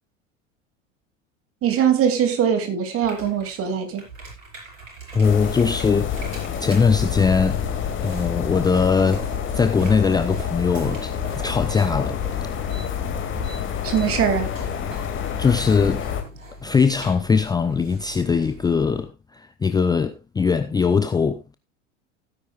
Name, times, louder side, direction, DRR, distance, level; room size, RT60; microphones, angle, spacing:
voice 1, 1.6-4.0 13.8-14.5, right 8 dB, 35° right, 2.8 m, -21 dB
sound 1, 3.0-19.0, right 3 dB, 75° right, 5.4 m, -41 dB
voice 2, 5.1-6.1 6.6-7.6 8.0-12.2 15.4-16.0 16.6-21.5, left 5 dB, 10° left, 0.6 m, -21 dB
sound 2, 5.2-16.2, left 8 dB, 30° left, 2.4 m, -28 dB
17.0 x 9.8 x 2.4 m
figure-of-eight pair, 80°, 39 cm